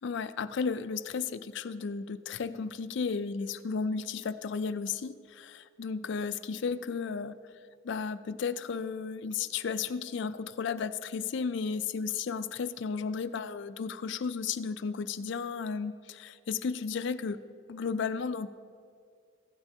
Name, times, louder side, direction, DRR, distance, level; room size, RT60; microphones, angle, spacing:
voice 1, 0.0-7.3 7.8-17.4 17.7-18.5, left 5 dB, 60° left, 13 dB, 0.4 m, -34 dB
15.5 x 12.0 x 2.8 m, 2.2 s
head